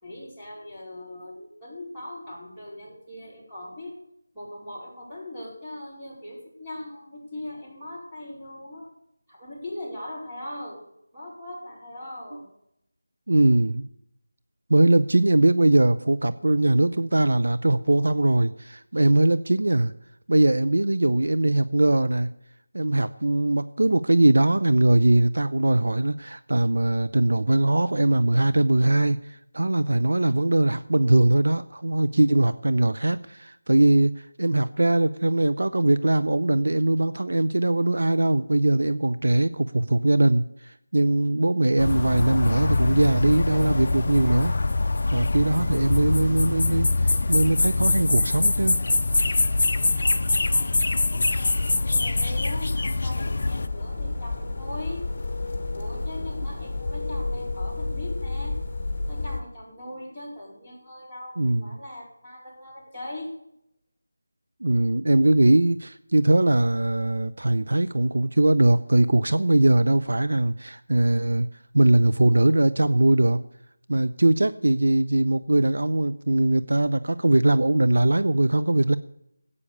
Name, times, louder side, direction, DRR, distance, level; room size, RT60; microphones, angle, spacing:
voice 1, 0.0-4.0 4.3-8.9 9.3-10.8 11.1-12.5 49.7-55.0 55.7-58.6 59.1-63.3, left 1 dB, ahead, -14 dB, 4.7 m, -40 dB
voice 2, 13.3-13.9 14.7-19.9 20.3-22.3 22.7-44.6 45.1-48.8 61.4-61.6 64.6-71.5 71.7-73.4 73.9-79.0, right 2 dB, 65° right, 12 dB, 0.6 m, -21 dB
sound 1, 41.8-53.7, left 3 dB, 45° left, 0.5 m, -24 dB
sound 2, 53.2-59.4, left 2 dB, 25° left, 1.8 m, -31 dB
15.0 x 8.5 x 6.8 m, 0.76 s
figure-of-eight pair, 165°, 0 cm